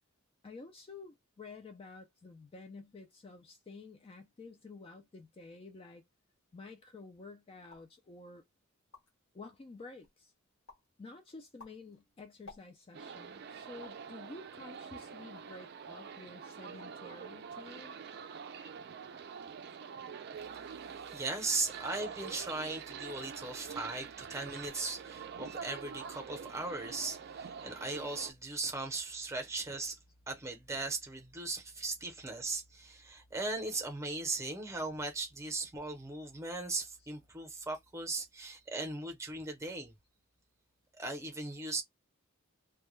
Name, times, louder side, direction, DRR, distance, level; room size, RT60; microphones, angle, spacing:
voice 1, 0.4-6.0 6.5-8.4 9.3-10.3 11.0-18.0 31.7-31.8, left 3 dB, 25° left, 0.3 m, -51 dB
sound 1, 7.6-8.0 8.5-8.6 8.8-9.3 9.8-10.2 10.7-10.9 11.4-13.0 13.8-14.1 14.7-15.6 16.0-16.2 16.6-17.1 17.3-17.8, left 3 dB, 65° left, 1.1 m, -57 dB
sound 2, 12.9-28.3, right 6 dB, 50° right, 0.4 m, -46 dB
voice 2, 21.1-30.0 30.3-39.9 41.0-41.8, right 3 dB, 15° right, 0.7 m, -38 dB
2.2 x 2.2 x 3.0 m
head